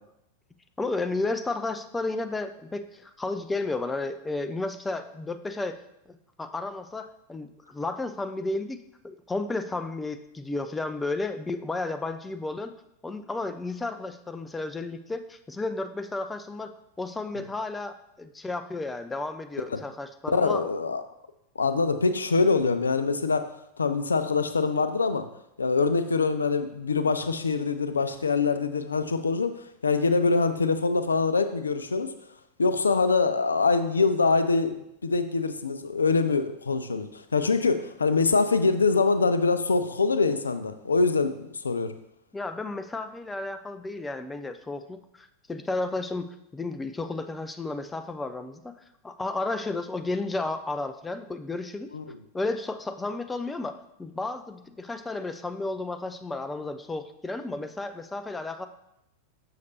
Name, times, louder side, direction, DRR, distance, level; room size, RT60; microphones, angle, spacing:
voice 1, 0.8-5.8 6.1-12.7 13.0-20.7 42.3-48.7 49.0-51.9 52.3-58.7, left 2 dB, 10° left, 8 dB, 0.4 m, -33 dB
voice 2, 20.3-21.0 21.6-23.5 23.8-25.3 25.6-29.5 29.8-32.1 32.6-34.8 35.0-41.9 51.9-52.0, left 4 dB, 75° left, 10 dB, 0.4 m, -24 dB
6.6 x 6.5 x 2.8 m, 0.82 s
figure-of-eight pair, 90°, 0 cm